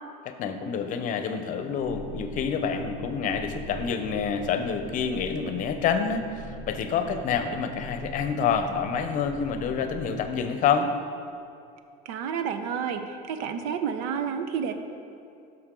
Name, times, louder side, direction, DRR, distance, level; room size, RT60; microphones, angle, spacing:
voice 1, 0.2-10.9, left 6 dB, 45° left, 8 dB, 0.7 m, -28 dB
sound 1, 1.8-10.3, right 1 dB, 65° right, 1.4 m, -41 dB
voice 2, 12.0-14.7, right 7 dB, 80° right, 8 dB, 0.7 m, -30 dB
11.0 x 6.1 x 3.8 m, 2.5 s
cardioid pair, 140°, 19 cm